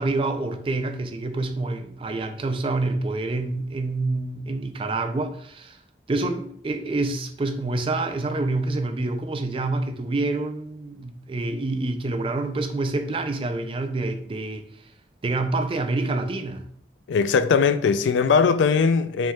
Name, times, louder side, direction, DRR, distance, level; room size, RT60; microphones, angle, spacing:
voice 1, 0.0-5.8 6.1-14.6 15.2-16.6, right 2 dB, 30° right, 0.4 m, -27 dB
voice 2, 17.1-19.3, left 5 dB, 90° left, 0.3 m, -20 dB
5.2 x 3.5 x 2.3 m
head